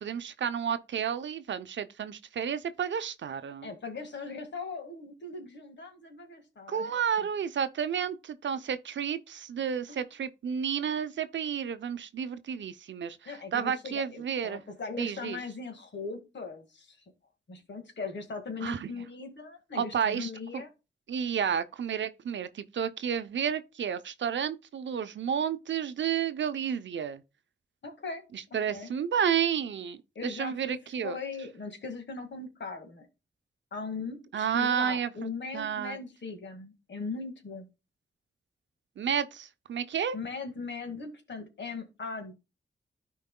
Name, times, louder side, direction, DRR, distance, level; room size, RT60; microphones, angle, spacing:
voice 1, 0.0-3.7 6.7-14.6 15.0-15.4 18.6-18.9 19.7-20.6 21.1-27.2 28.3-31.2 34.3-36.0 39.0-40.2, right 8 dB, 80° right, 0.6 m, -31 dB
voice 2, 3.6-7.0 9.9-10.0 13.3-17.0 17.5-20.7 27.8-28.2 28.7-28.9 30.2-30.8 31.0-33.1 33.7-37.7 40.1-42.3, left 4 dB, 70° left, 1.8 m, -39 dB
13.0 x 4.6 x 2.2 m
cardioid pair, 45°, 19 cm